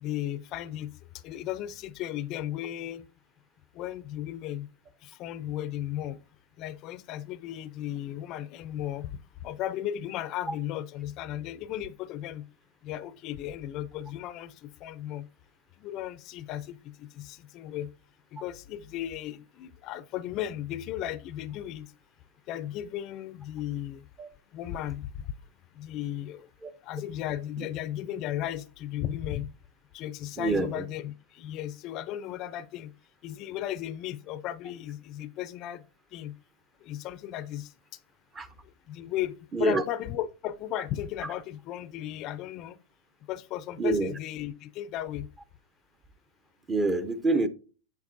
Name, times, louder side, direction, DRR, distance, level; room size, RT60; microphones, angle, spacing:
voice 1, 0.0-0.9 1.2-3.1 3.7-4.7 5.0-6.2 6.6-9.1 9.4-12.4 12.8-15.3 15.8-17.9 18.3-21.9 22.5-24.0 24.5-25.1 25.7-26.5 26.8-29.5 29.9-32.9 33.2-35.8 36.1-36.3 36.8-37.7 38.9-42.8 43.3-45.3, left 12 dB, 35° left, 0.5 m, -35 dB
voice 2, 30.4-30.7 38.3-38.5 39.5-39.8 43.8-44.1 46.7-47.5, right 2 dB, 15° right, 0.6 m, -26 dB
7.8 x 7.1 x 2.6 m
supercardioid pair, 150°, 0 cm